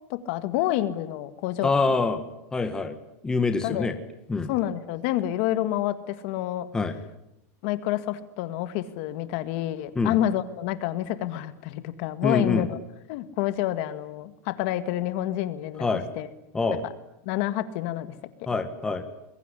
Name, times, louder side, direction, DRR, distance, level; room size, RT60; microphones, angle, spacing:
voice 1, 0.1-2.0 3.6-3.9 4.5-6.7 7.6-12.8 13.1-15.9 16.2-16.3 17.3-18.1, left 13 dB, 45° left, 11 dB, 1.9 m, -28 dB
voice 2, 1.6-2.2 2.5-3.0 3.2-3.9 4.3-4.5 6.7-6.9 9.9-10.2 12.2-12.7 15.8-16.0 16.5-16.8 18.5-19.0, left 4 dB, 10° left, 7 dB, 1.7 m, -25 dB
25.5 x 22.0 x 10.0 m, 0.84 s
supercardioid pair, 170°, 8 cm